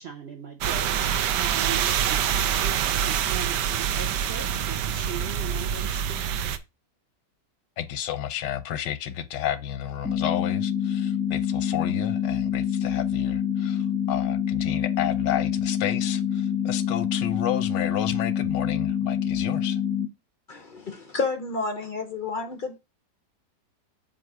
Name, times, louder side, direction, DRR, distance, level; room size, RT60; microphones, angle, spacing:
voice 1, 0.0-6.4, right 7 dB, 60° right, 0.7 m, -39 dB
sound 1, 0.6-6.6, right 9 dB, 85° right, 1.2 m, -26 dB
voice 2, 7.8-19.8, left 11 dB, 90° left, 1.3 m, -31 dB
sound 2, 10.0-20.1, left 8 dB, 10° left, 0.6 m, -26 dB
voice 3, 20.5-22.8, left 4 dB, 60° left, 0.5 m, -30 dB
7.6 x 2.6 x 4.7 m
omnidirectional pair, 1.8 m